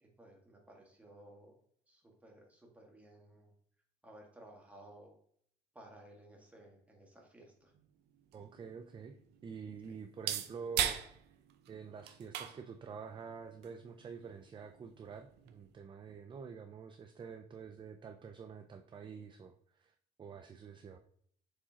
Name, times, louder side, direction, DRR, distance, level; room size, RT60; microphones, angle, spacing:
voice 1, 0.0-1.6 1.9-3.5 4.0-5.2 5.7-7.7 9.9-10.0, right 1 dB, 10° right, -1 dB, 1.7 m, -57 dB
sound 1, 7.7-15.7, right 10 dB, 80° right, 0.6 m, -42 dB
voice 2, 8.3-9.2 9.4-11.0 11.7-19.9 20.2-21.0, right 6 dB, 30° right, 6 dB, 0.5 m, -48 dB
6.9 x 4.8 x 2.9 m, 0.65 s
cardioid pair, 110°, 17 cm